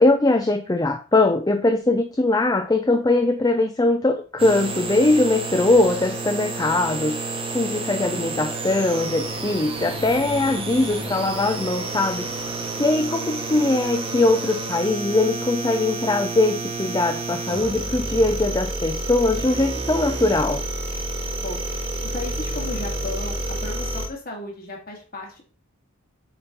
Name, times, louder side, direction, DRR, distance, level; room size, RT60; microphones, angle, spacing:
voice 1, 0.0-7.2 7.5-12.3 12.8-20.6, left 2 dB, 15° left, 6 dB, 0.4 m, -21 dB
sound 1, 4.4-24.1, right 2 dB, 25° right, 1.1 m, -30 dB
voice 2, 22.0-25.4, left 2 dB, 40° left, 0 dB, 2.1 m, -35 dB
7.7 x 4.3 x 3.9 m, 0.36 s
head